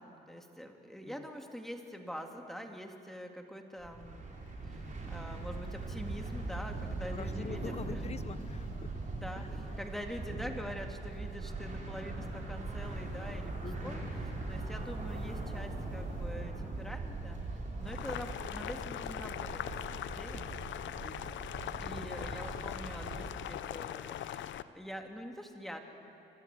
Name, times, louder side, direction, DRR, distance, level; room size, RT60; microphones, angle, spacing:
voice 1, 0.0-4.8 5.1-8.0 9.1-13.5 13.8-17.4 17.8-20.5 21.8-25.8, equal, ahead, 3 dB, 2.2 m, -45 dB
sound 1, 3.8-23.3, right 2 dB, 40° right, 5.0 m, -40 dB
voice 2, 7.1-8.9 9.4-9.5 13.6-14.1 21.0-21.4, left 5 dB, 35° left, 13 dB, 0.9 m, -45 dB
Boiling, 17.8-24.6, left 11 dB, 70° left, 0.7 m, -41 dB
26.0 x 13.5 x 8.2 m, 2.9 s
cardioid pair, 90°, 20 cm